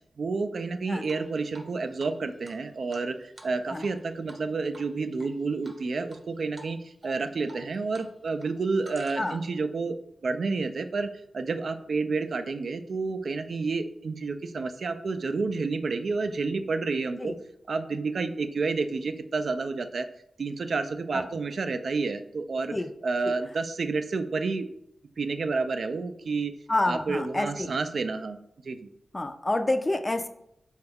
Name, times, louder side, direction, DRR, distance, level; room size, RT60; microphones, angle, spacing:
voice 1, 0.2-17.3 17.7-20.1 20.4-22.7 23.0-24.7 25.2-26.5 26.9-28.4 28.6-28.9, right 4 dB, 70° right, 8 dB, 0.3 m, -30 dB
Drip, 1.0-1.7 2.0-2.1 2.4-4.0 4.3-4.4 4.7-5.3 5.6-6.2 6.5-6.7 7.0-8.1 8.3-9.5, right 1 dB, 45° right, 0.7 m, -49 dB
voice 2, 26.7-27.7 29.1-30.3, left 2 dB, 25° left, 8 dB, 0.4 m, -28 dB
4.2 x 2.3 x 3.4 m, 0.77 s
cardioid pair, 70°, 0 cm